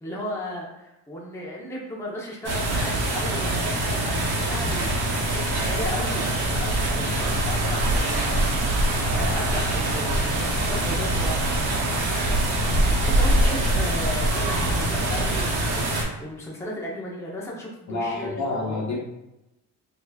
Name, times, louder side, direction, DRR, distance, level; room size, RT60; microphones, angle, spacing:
voice 1, 0.0-11.4 13.0-18.8, left 1 dB, 5° left, -4 dB, 0.7 m, -35 dB
sound 1, 2.4-16.0, right 1 dB, 70° right, 1.0 m, -24 dB
sound 2, 7.2-13.2, right 6 dB, 90° right, 0.5 m, -38 dB
voice 2, 13.6-13.9 17.9-19.0, left 2 dB, 45° left, -1 dB, 0.9 m, -30 dB
4.3 x 2.8 x 2.3 m, 0.92 s
cardioid pair, 95°, 39 cm